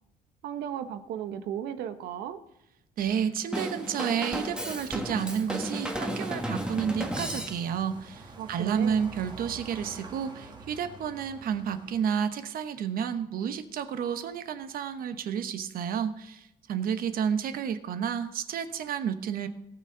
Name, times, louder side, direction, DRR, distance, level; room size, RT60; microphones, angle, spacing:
voice 1, 0.4-2.4 8.4-9.0, right 9 dB, 80° right, 10 dB, 1.0 m, -35 dB
voice 2, 3.0-19.5, right 8 dB, 60° right, 10 dB, 1.1 m, -31 dB
Drum kit / Drum, 3.5-7.9, right 1 dB, 5° right, 1.4 m, -33 dB
sound 1, 4.5-12.2, right 3 dB, 25° right, 1.9 m, -47 dB
18.5 x 6.8 x 3.9 m, 0.88 s
cardioid pair, 110°, 17 cm